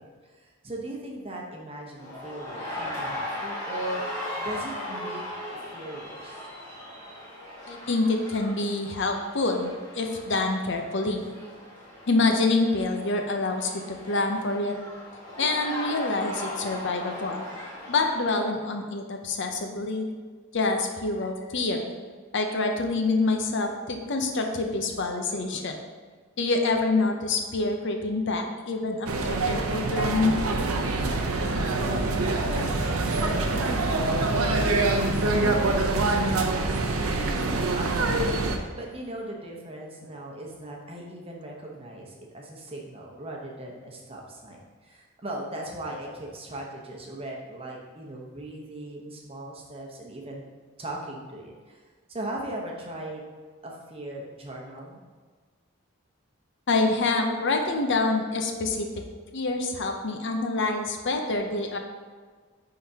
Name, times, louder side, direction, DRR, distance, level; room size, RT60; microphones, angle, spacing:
voice 1, 0.0-5.2 5.7-6.4 31.9-36.9 37.3-50.4 50.8-51.8 52.1-53.2 53.6-55.0, right 1 dB, 25° right, -1 dB, 0.9 m, -39 dB
sound 1, 2.0-18.6, left 1 dB, 15° left, 1.6 m, -38 dB
voice 2, 7.7-11.2 12.1-14.7 15.4-17.5 17.9-20.1 20.5-21.9 22.3-25.8 26.4-30.4 56.7-58.9 59.3-61.8, left 3 dB, 55° left, 4 dB, 0.6 m, -26 dB
sound 2, 29.1-38.6, right 2 dB, 80° right, 0.7 m, -25 dB
10.0 x 3.8 x 2.8 m, 1.5 s
head